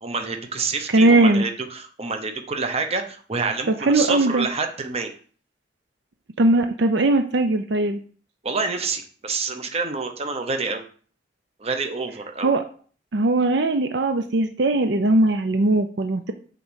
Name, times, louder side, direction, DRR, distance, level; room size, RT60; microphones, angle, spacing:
voice 1, 0.0-5.1 8.4-10.9 11.6-12.5, right 4 dB, 35° right, 6 dB, 1.0 m, -27 dB
voice 2, 0.9-1.4 3.8-4.5 6.4-8.0 12.4-12.6 13.1-16.3, right 2 dB, 70° right, 7 dB, 0.6 m, -19 dB
6.5 x 3.9 x 6.4 m, 0.43 s
head